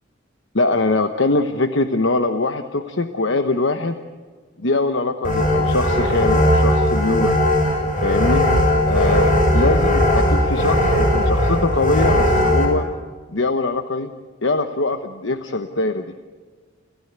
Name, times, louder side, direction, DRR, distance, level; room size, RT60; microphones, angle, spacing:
voice 1, 0.5-4.0 4.6-7.3 8.0-8.4 8.9-12.9 13.3-14.1 14.4-16.1, left 2 dB, 70° left, 8 dB, 1.1 m, -22 dB
sound 1, 5.2-12.7, left 1 dB, 45° left, 6.7 m, -18 dB
29.5 x 15.5 x 8.2 m, 1.5 s
head